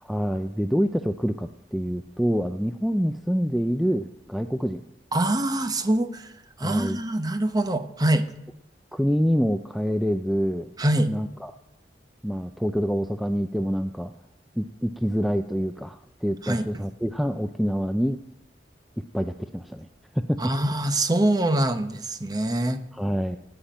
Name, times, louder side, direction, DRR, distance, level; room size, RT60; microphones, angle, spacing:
voice 1, 0.0-4.8 6.6-7.0 8.9-10.7 11.0-11.5 12.2-14.1 14.6-18.2 19.1-19.9 20.1-20.4 22.9-23.4, equal, ahead, 8 dB, 0.4 m, -26 dB
voice 2, 5.1-6.3 6.6-8.3 10.8-11.1 16.4-16.7 20.4-22.8, right 1 dB, 20° right, 10 dB, 0.8 m, -24 dB
11.5 x 8.8 x 9.1 m, 0.90 s
head